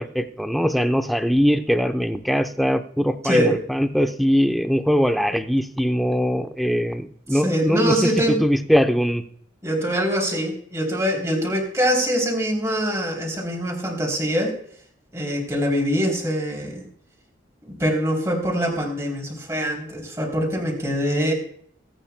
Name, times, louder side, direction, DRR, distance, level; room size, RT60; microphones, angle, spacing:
voice 1, 0.0-8.1 8.4-9.2, equal, ahead, 7 dB, 0.7 m, -21 dB
voice 2, 3.2-3.6 7.3-8.4 9.6-14.5 15.1-16.8 17.6-21.3, equal, 15° right, 1 dB, 3.1 m, -23 dB
23.0 x 9.1 x 2.2 m, 0.62 s
head